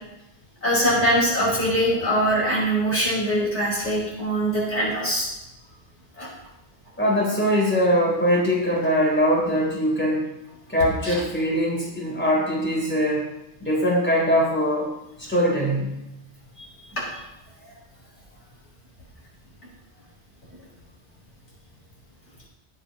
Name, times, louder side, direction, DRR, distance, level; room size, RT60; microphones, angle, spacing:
voice 1, 0.6-5.3 6.2-6.3 11.0-11.2 16.6-17.0, equal, 80° left, -6 dB, 5.3 m, -23 dB
voice 2, 7.0-10.3 10.7-13.2 13.6-14.9 15.2-15.9 17.6-17.7, equal, 10° left, -5 dB, 3.8 m, -22 dB
18.5 x 8.7 x 3.0 m, 0.93 s
omnidirectional pair, 1.2 m